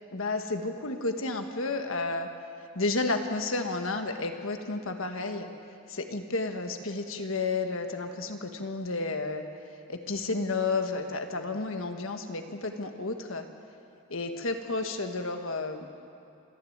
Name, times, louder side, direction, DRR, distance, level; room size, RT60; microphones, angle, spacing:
voice 1, 0.1-2.3 2.7-5.5 5.9-9.4 9.9-13.4 14.1-15.9, left 3 dB, 65° left, 6 dB, 1.5 m, -31 dB
26.5 x 10.5 x 9.4 m, 2.5 s
head